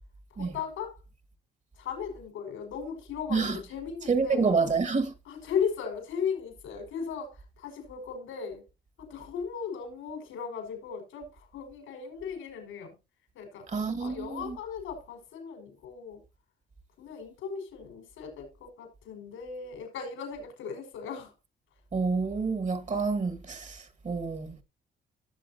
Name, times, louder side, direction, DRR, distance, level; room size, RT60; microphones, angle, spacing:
voice 1, 0.3-1.0 1.7-4.5 5.3-8.7 9.0-12.9 13.3-16.2 17.0-21.3, left 6 dB, 85° left, 5.5 m, -37 dB
voice 2, 4.1-5.1 13.7-14.6 21.9-24.6, right 4 dB, 35° right, 2.0 m, -28 dB
17.5 x 7.5 x 2.9 m
cardioid pair, 90°, 20 cm